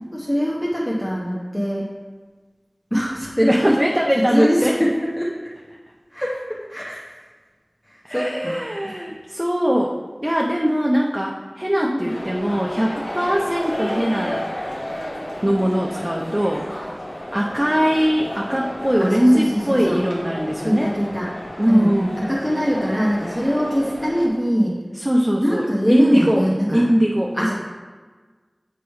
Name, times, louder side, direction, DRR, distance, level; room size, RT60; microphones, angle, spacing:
voice 1, 0.1-1.9 2.9-3.5 4.3-5.3 6.1-7.1 7.9-8.6 11.7-12.1 19.0-20.0 20.6-21.3 21.7-24.7 25.4-26.8 27.4-27.5, equal, 15° left, -6 dB, 1.0 m, -23 dB
voice 2, 3.5-4.8 8.0-14.4 15.4-16.7 17.3-20.9 21.6-22.1 25.0-26.5 26.7-27.4, equal, 15° right, -2 dB, 0.6 m, -20 dB
sound 1, 12.0-24.3, equal, 90° left, 1.2 m, -32 dB
8.2 x 3.0 x 4.8 m, 1.4 s
wide cardioid pair, 45°, 0 cm